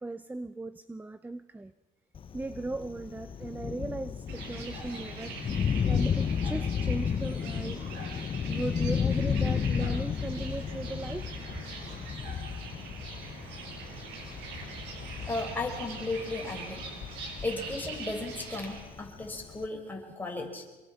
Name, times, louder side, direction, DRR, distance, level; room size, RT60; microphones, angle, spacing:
voice 1, 0.0-1.7 2.3-5.4 5.8-7.8 8.5-11.7, right 2 dB, 10° right, 14 dB, 0.7 m, -37 dB
Thunder, 2.1-19.7, left 7 dB, 30° left, 0.7 m, -33 dB
sound 1, 4.3-18.8, right 4 dB, 90° right, 6.4 m, -43 dB
voice 2, 15.2-16.9 17.4-20.6, left 2 dB, 10° left, 0 dB, 5.7 m, -35 dB
27.0 x 23.0 x 5.9 m, 1.1 s
cardioid pair, 110°, 17 cm